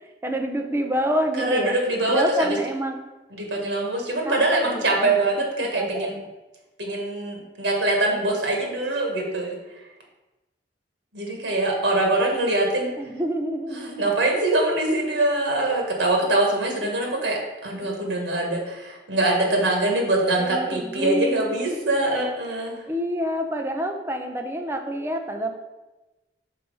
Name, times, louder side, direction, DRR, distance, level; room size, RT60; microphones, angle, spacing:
voice 1, 0.2-1.7 2.1-3.0 4.2-5.2 5.6-6.1 13.0-14.1 20.4-21.5 22.9-25.6, equal, 15° right, 4 dB, 0.6 m, -27 dB
voice 2, 1.4-2.6 3.3-6.2 6.8-9.6 11.1-12.9 13.7-22.8, right 2 dB, 90° right, 1 dB, 1.5 m, -23 dB
5.7 x 4.1 x 5.4 m, 1.1 s
head